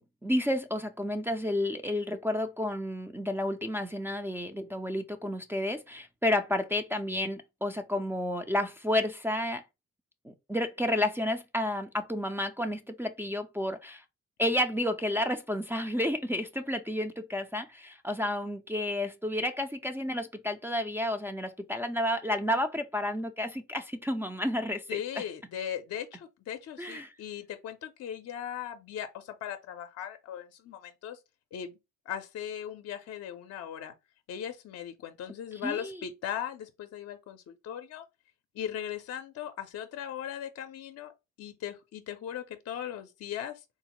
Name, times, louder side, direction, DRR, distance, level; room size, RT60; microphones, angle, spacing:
voice 1, 0.0-9.6 10.2-14.0 14.4-25.0 26.8-27.1 35.6-36.0, left 1 dB, 10° right, 0.4 m, -31 dB
voice 2, 24.9-31.2 31.5-31.8 32.1-33.9 34.3-38.0 38.5-41.1 41.4-43.6, left 9 dB, 55° left, 0.5 m, -38 dB
3.8 x 2.1 x 2.9 m
cardioid pair, 90°, 30 cm